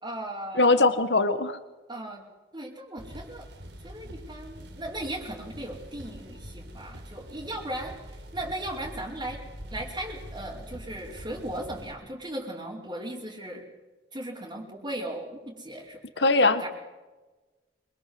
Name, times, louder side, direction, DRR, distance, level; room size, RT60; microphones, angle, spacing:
voice 1, 0.0-1.0 1.9-2.2 2.5-3.4 3.8-7.9 8.3-9.4 9.7-13.6 14.1-16.7, right 1 dB, 25° right, -5 dB, 5.0 m, -37 dB
voice 2, 0.6-1.6 16.2-16.7, left 3 dB, 80° left, 11 dB, 1.7 m, -21 dB
sound 1, 3.0-11.9, equal, 85° right, 5.4 m, -44 dB
27.5 x 23.5 x 8.0 m, 1.2 s
head